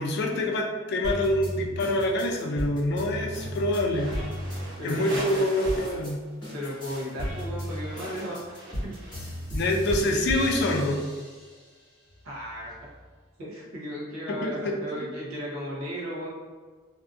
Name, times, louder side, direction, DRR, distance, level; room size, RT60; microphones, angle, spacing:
voice 1, 0.0-4.1 4.8-6.2 9.5-11.0 14.3-14.7, left 1 dB, 50° left, 1 dB, 0.3 m, -26 dB
sound 1, 1.0-6.1 6.4-11.6 12.1-13.0, equal, 20° left, 1.2 m, -35 dB
sound 2, 3.9-6.1 6.3-9.5, right 1 dB, 45° right, 1.2 m, -41 dB
voice 2, 4.8-5.5 6.5-8.5 8.8-9.0 12.2-12.7 13.4-16.3, equal, 75° right, -5 dB, 0.8 m, -35 dB
2.5 x 2.5 x 2.4 m, 1.5 s
head